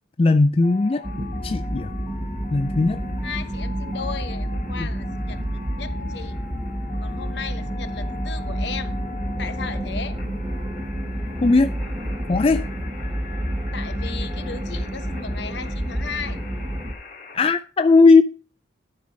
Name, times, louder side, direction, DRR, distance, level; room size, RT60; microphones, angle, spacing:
voice 1, 0.2-1.9 2.5-3.0 4.8-4.9 11.4-11.7 12.3-12.6 17.3-18.2, left 3 dB, 30° left, 0.4 m, -17 dB
sound 1, 0.6-17.4, left 5 dB, 45° left, 2.8 m, -42 dB
sound 2, 1.0-16.9, equal, 20° right, 1.2 m, -29 dB
voice 2, 3.2-6.4 7.0-9.0 9.4-10.2 13.7-16.4, left 5 dB, 65° left, 0.9 m, -35 dB
12.0 x 5.1 x 5.0 m
head